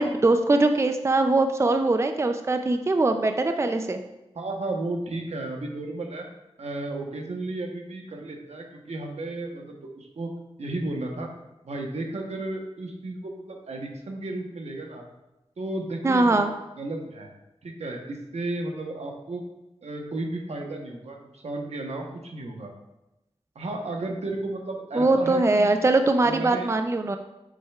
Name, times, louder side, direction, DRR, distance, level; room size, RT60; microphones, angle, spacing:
voice 1, 0.0-4.0 16.0-16.5 24.9-27.2, right 2 dB, 25° right, 7 dB, 0.4 m, -22 dB
voice 2, 4.3-6.3 6.6-10.3 10.6-11.3 11.6-15.0 15.6-16.4 16.8-17.3 17.6-19.4 19.8-22.7 23.5-25.8 26.2-26.7, right 2 dB, 85° right, 2 dB, 1.0 m, -33 dB
7.5 x 6.4 x 2.4 m, 0.95 s
wide cardioid pair, 75°, 11 cm